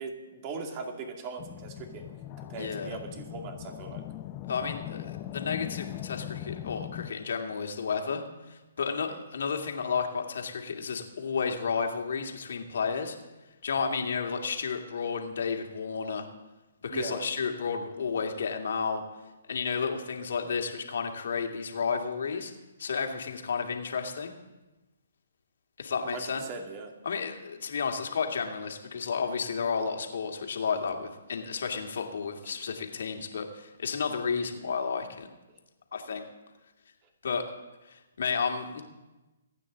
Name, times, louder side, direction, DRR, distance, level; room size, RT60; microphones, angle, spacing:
voice 1, 0.0-2.0 2.5-4.0 8.9-9.2 16.9-17.3 26.1-26.9, right 4 dB, 35° right, 3 dB, 2.6 m, -39 dB
sound 1, 1.4-7.1, left 13 dB, 30° left, 0.7 m, -40 dB
voice 2, 2.6-2.9 4.5-8.2 8.5-13.2 13.6-16.3 16.8-19.0 19.5-22.5 22.8-24.3 25.8-26.4 27.0-35.3 35.9-36.2 37.2-37.5 37.8-38.8, left 5 dB, 65° left, 3 dB, 2.3 m, -32 dB
27.0 x 9.1 x 4.0 m, 1.1 s
hypercardioid pair, 135°, 0 cm